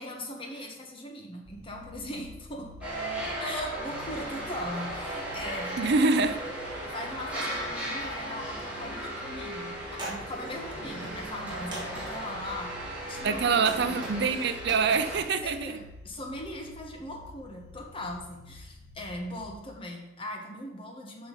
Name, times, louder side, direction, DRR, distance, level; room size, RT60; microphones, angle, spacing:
voice 1, 0.0-2.7 3.4-5.8 6.9-9.8 10.1-12.7 13.1-14.3 15.4-21.3, left 1 dB, 30° left, 1 dB, 1.3 m, -39 dB
sound 1, 1.5-19.5, left 2 dB, 85° left, 1.0 m, -50 dB
sound 2, 2.8-15.2, right 1 dB, 10° right, 2.3 m, -36 dB
voice 2, 5.8-6.4 13.2-15.8, right 4 dB, 65° right, 10 dB, 0.5 m, -25 dB
sound 3, 9.9-10.5 11.1-11.4 11.7-12.3 13.1-15.5, right 2 dB, 25° right, 1.7 m, -42 dB
5.7 x 5.5 x 5.6 m, 1.0 s
head